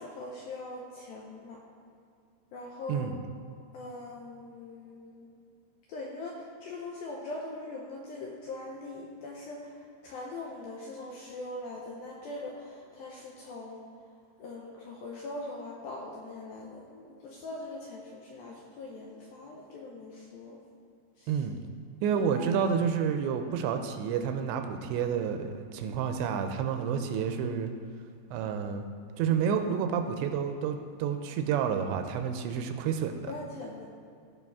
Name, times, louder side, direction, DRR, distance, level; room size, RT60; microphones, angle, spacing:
voice 1, 0.0-1.6 2.5-3.1 3.7-5.3 5.9-13.9 14.4-20.6 21.2-21.4 33.3-33.8, left 2 dB, 80° left, -2 dB, 2.2 m, -41 dB
voice 2, 22.0-27.7 28.3-28.8 29.2-33.3, right 7 dB, 85° right, 6 dB, 2.8 m, -29 dB
16.5 x 5.9 x 3.6 m, 2.5 s
omnidirectional pair, 5.2 m